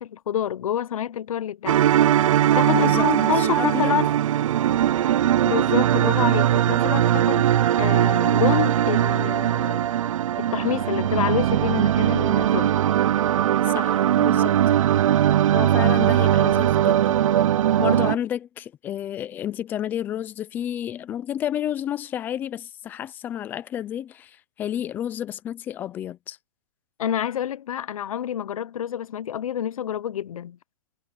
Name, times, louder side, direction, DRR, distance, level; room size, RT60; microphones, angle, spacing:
voice 1, 0.0-1.8 2.5-4.1 5.5-7.5 7.8-9.8 10.4-12.8 27.0-30.6, left 10 dB, 75° left, 0.7 m, -27 dB
sound 1, 1.7-18.2, right 11 dB, 65° right, 0.4 m, -20 dB
voice 2, 2.7-4.0 13.7-14.6 15.5-17.2 17.8-26.4, left 10 dB, 10° left, 0.5 m, -31 dB
hypercardioid pair, 165°, 18 cm